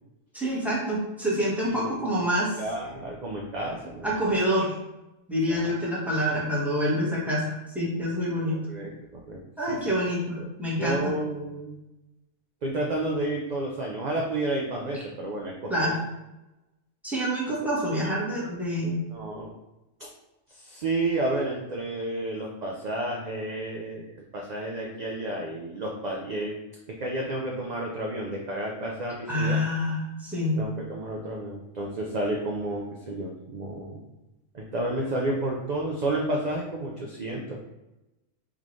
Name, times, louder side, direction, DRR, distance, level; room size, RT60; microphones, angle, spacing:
voice 1, 0.3-2.6 4.0-4.8 5.3-8.6 9.6-11.1 15.7-16.0 17.0-19.0 29.3-30.6, equal, ahead, -7 dB, 1.2 m, -27 dB
voice 2, 1.6-2.1 2.6-4.4 5.5-5.8 8.5-9.4 9.7-9.8 10.4-10.5 10.8-11.8 12.6-15.9 19.1-19.5 20.0-20.1 20.5-24.1 24.3-26.6 26.9-29.6 30.6-34.1 34.5-37.6, right 1 dB, 50° right, -1 dB, 0.5 m, -31 dB
3.9 x 3.7 x 3.1 m, 0.98 s
omnidirectional pair, 1.3 m